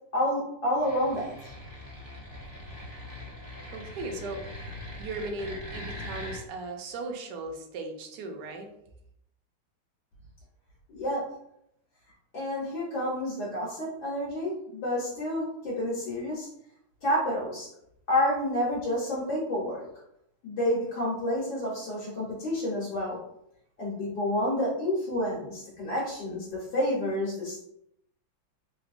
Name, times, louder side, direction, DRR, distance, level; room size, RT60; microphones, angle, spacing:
voice 1, 0.1-1.5 10.9-11.3 12.3-16.5 17.0-17.7 18.1-19.9 20.4-23.2 23.8-27.6, left 1 dB, 65° left, -7 dB, 1.5 m, -29 dB
sound 1, 0.7-6.4, left 1 dB, 40° right, 0.5 m, -41 dB
voice 2, 3.7-4.4 5.0-8.7, right 2 dB, 70° right, 3 dB, 1.0 m, -37 dB
3.4 x 2.8 x 2.5 m, 0.78 s
omnidirectional pair, 2.3 m